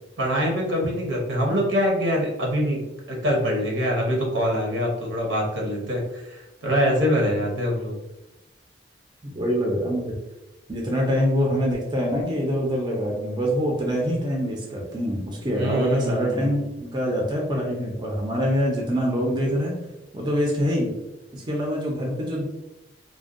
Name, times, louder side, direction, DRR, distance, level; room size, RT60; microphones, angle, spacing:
voice 1, 0.2-2.8 3.1-8.0 15.5-16.6, equal, 80° right, -1 dB, 0.7 m, -24 dB
voice 2, 9.2-10.1 10.7-19.7 20.1-20.9 21.3-22.5, equal, 25° right, -2 dB, 0.5 m, -25 dB
2.5 x 2.2 x 2.4 m, 0.95 s
head